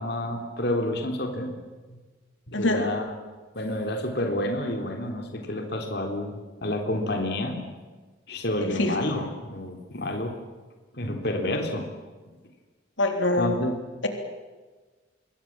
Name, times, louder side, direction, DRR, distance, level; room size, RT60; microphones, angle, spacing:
voice 1, 0.0-1.5 2.5-3.0 3.6-7.6 8.3-10.3 10.9-11.9 13.4-13.7, left 1 dB, 55° left, 3 dB, 3.6 m, -29 dB
voice 2, 2.5-2.9 8.6-9.0 13.0-13.5, left 1 dB, 80° left, 5 dB, 3.6 m, -24 dB
26.5 x 22.5 x 7.5 m, 1.3 s
head